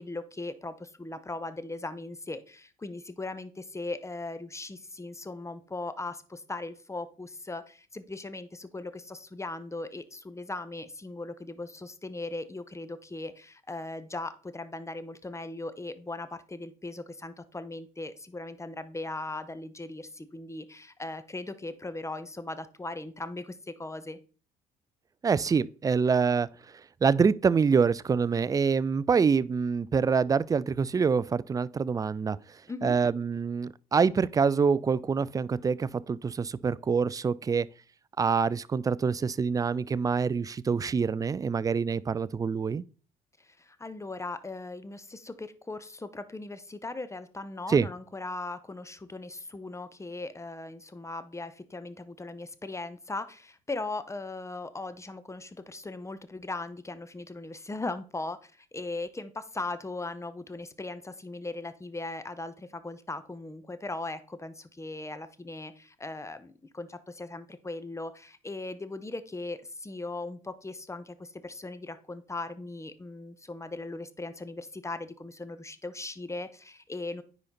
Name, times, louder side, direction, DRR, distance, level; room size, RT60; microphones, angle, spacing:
voice 1, 0.0-24.2 32.7-33.0 43.4-77.2, left 2 dB, 15° left, 0.9 m, -38 dB
voice 2, 25.2-26.5 27.0-32.4 32.8-37.7 38.2-42.8 47.7-47.9, right 5 dB, 15° right, 0.3 m, -26 dB
9.7 x 4.0 x 4.2 m
hypercardioid pair, 55°, 21 cm